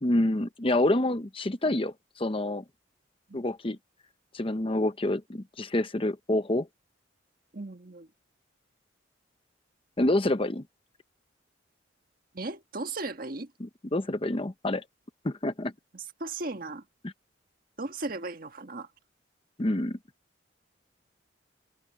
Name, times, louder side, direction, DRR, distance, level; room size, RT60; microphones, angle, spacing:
voice 1, 0.0-2.6 3.3-3.8 4.3-6.7 10.0-10.6 13.6-14.8 15.2-15.7 19.6-20.0, left 1 dB, 30° left, 0.8 m, -27 dB
voice 2, 7.5-8.1 12.3-13.5 15.9-16.8 17.8-18.9, right 3 dB, 50° right, 1.6 m, -36 dB
head